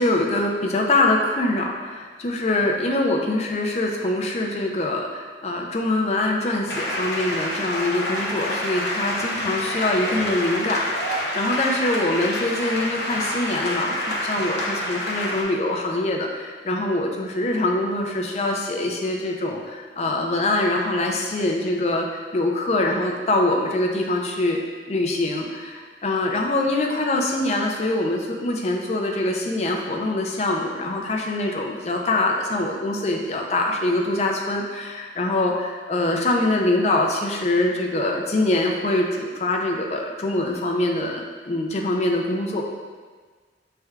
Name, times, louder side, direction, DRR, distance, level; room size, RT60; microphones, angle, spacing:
voice 1, 0.0-24.6 24.9-42.6, left 2 dB, 35° left, 1 dB, 0.4 m, -24 dB
sound 1, 6.7-15.4, left 1 dB, 75° left, 0.9 m, -28 dB
5.7 x 3.3 x 2.3 m, 1.5 s
head